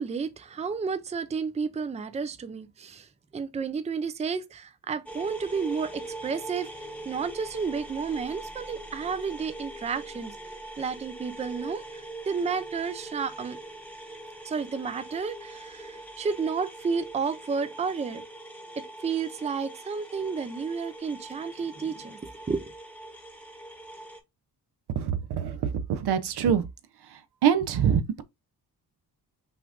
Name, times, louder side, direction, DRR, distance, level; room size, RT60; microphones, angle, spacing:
voice 1, 0.0-6.7 7.1-10.3 10.8-13.6 14.4-18.2 19.0-22.7, right 5 dB, 20° right, 0.4 m, -31 dB
sound 1, 5.1-24.2, right 1 dB, 5° left, 1.0 m, -42 dB
voice 2, 25.0-26.6 27.4-28.2, right 8 dB, 80° right, 0.8 m, -25 dB
5.8 x 2.5 x 3.5 m
wide cardioid pair, 155°, 39 cm